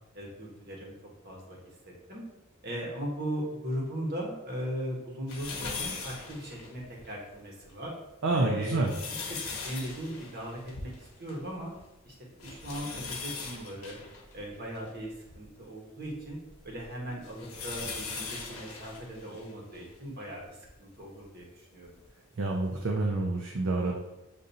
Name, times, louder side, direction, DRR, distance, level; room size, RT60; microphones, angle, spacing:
voice 1, 0.1-0.9 1.2-1.7 2.1-2.2 2.6-7.9 8.3-8.9 9.3-9.4 9.6-11.7 12.1-12.2 12.4-14.0 14.3-16.4 16.6-21.9, equal, 45° right, -2 dB, 1.1 m, -38 dB
sound 1, 5.3-7.1 7.6-7.7 8.5-11.5 11.8-11.9 12.4-15.4 16.0-19.9 20.6-20.7 22.0-22.1, left 4 dB, 75° left, 1.0 m, -40 dB
voice 2, 8.2-8.9 22.4-24.0, right 2 dB, 60° right, 0 dB, 0.5 m, -28 dB
6.8 x 2.6 x 2.6 m, 1.0 s
head